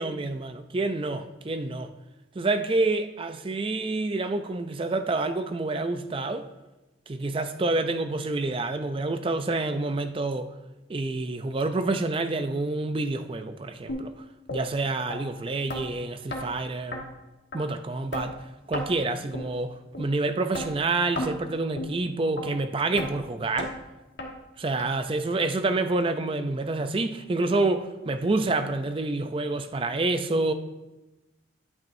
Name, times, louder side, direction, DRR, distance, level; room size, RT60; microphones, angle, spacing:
voice 1, 0.0-1.9 2.4-6.5 7.1-10.5 10.9-14.1 14.5-17.0 17.5-18.4 18.7-23.7 24.6-30.5, right 2 dB, 25° right, 0.4 m, -28 dB
sound 1, 13.9-14.0 14.5-14.6 15.1-15.2 15.7-15.8 16.3-16.4 16.9-17.0 17.5-17.6 18.1-18.3 18.7-18.9 19.3-19.5 19.9-20.1 20.5-20.7 21.2-21.3 21.8-21.9 22.4-22.5 23.0-23.1 23.6-23.7 24.2-24.3 24.8-24.9 25.4-25.5 26.0-26.1 26.6-26.7, left 1 dB, 65° left, 1.3 m, -33 dB
10.5 x 8.8 x 2.6 m
head